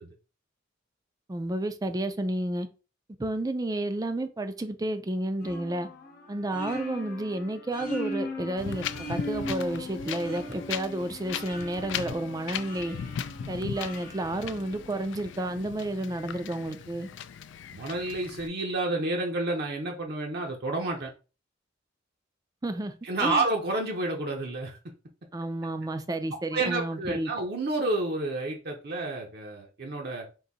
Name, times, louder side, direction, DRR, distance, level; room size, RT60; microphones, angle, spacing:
voice 1, 1.3-2.7 3.2-5.9 6.3-13.0 13.5-17.1 22.6-23.4 25.3-27.3, right 1 dB, 20° right, 0.4 m, -31 dB
sound 1, 5.4-15.2, left 1 dB, 45° left, 0.9 m, -39 dB
Wind, 8.6-18.5, left 8 dB, 65° left, 0.3 m, -38 dB
voice 2, 17.7-21.1 23.0-24.8 26.5-30.3, right 2 dB, 55° right, 0.7 m, -30 dB
3.8 x 2.6 x 4.0 m
head